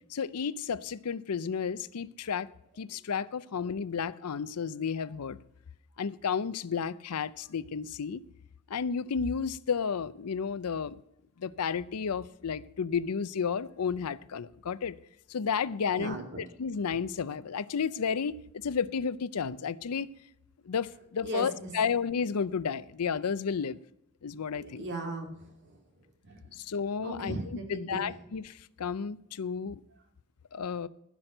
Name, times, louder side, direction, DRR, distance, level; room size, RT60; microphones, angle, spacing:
voice 1, 0.1-2.5 2.8-5.4 6.0-8.2 8.7-10.9 11.4-15.0 15.3-16.2 16.6-20.1 20.7-23.8 24.2-24.8 26.5-27.3 27.7-29.8 30.5-30.9, left 6 dB, 85° left, 0.5 m, -32 dB
voice 2, 15.9-16.2 21.2-21.7 24.5-25.8 26.2-26.6 27.0-28.2, right 2 dB, 55° right, 2.5 m, -38 dB
15.5 x 6.0 x 6.6 m
head